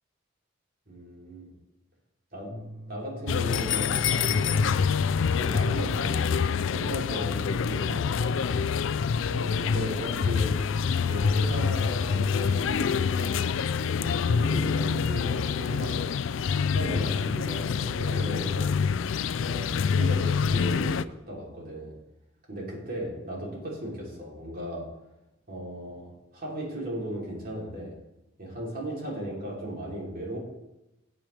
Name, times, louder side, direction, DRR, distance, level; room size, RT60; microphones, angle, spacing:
voice 1, 0.9-1.5 2.3-4.6 5.2-8.7 9.3-10.6 11.0-13.4 13.9-18.7 19.4-21.9 22.5-24.9 25.5-28.0 28.4-30.4, equal, 50° right, -3 dB, 3.3 m, -37 dB
sound 1, 2.5-9.1, right 1 dB, 25° right, 3.1 m, -46 dB
sound 2, 3.3-21.0, left 6 dB, 85° left, 0.4 m, -26 dB
16.5 x 7.5 x 3.4 m, 0.95 s
head